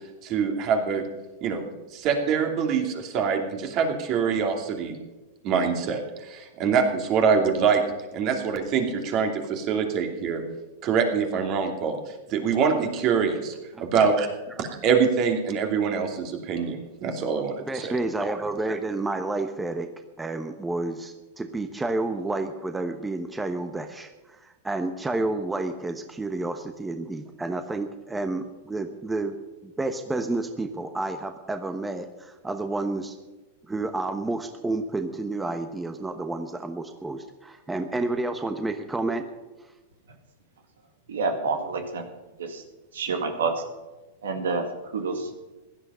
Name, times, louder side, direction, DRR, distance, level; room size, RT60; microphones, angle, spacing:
voice 1, 0.2-1.0 1.4-1.6 1.9-4.9 5.4-6.0 6.3-7.8 8.1-10.4 10.8-12.0 12.3-14.3 14.6-17.9, right 6 dB, 45° right, 4 dB, 2.7 m, -24 dB
voice 2, 17.7-19.9 20.2-29.3 29.6-33.2 33.7-39.2, right 2 dB, 10° right, 7 dB, 1.0 m, -30 dB
voice 3, 41.1-42.0 42.4-42.6 42.9-43.6 44.2-45.3, right 4 dB, 85° right, 5 dB, 2.1 m, -28 dB
16.0 x 11.5 x 5.6 m, 1.1 s
hypercardioid pair, 115°, 0 cm